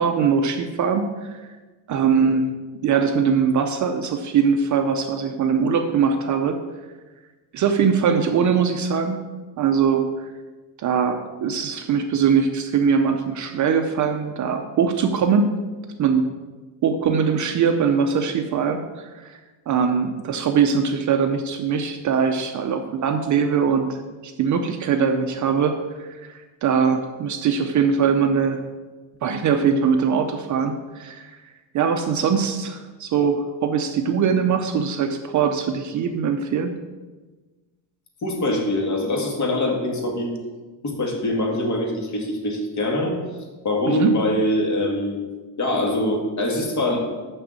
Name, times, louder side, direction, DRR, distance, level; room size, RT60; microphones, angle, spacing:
voice 1, 0.0-1.5 1.9-2.5 2.8-6.6 7.5-9.2 9.6-10.3 10.8-15.5 16.0-16.2 16.8-19.4 19.7-28.6 29.2-31.4 31.7-36.8 43.9-44.1, right 6 dB, 40° right, 6 dB, 0.6 m, -21 dB
voice 2, 38.2-40.3 40.8-43.2 43.6-45.2 45.6-47.0, left 1 dB, 35° left, 0 dB, 2.0 m, -23 dB
6.6 x 6.1 x 7.4 m, 1.3 s
cardioid pair, 160°, 48 cm